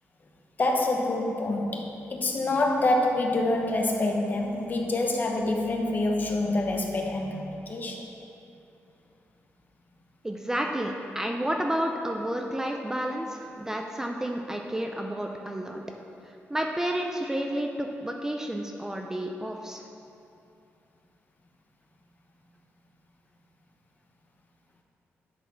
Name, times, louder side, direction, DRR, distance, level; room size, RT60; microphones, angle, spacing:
voice 1, 0.6-8.0, left 2 dB, 40° left, 1 dB, 1.1 m, -26 dB
voice 2, 10.2-15.8 16.5-19.8, right 1 dB, 10° right, 2 dB, 0.5 m, -31 dB
10.0 x 4.2 x 5.7 m, 2.7 s
cardioid pair, 100°, 5 cm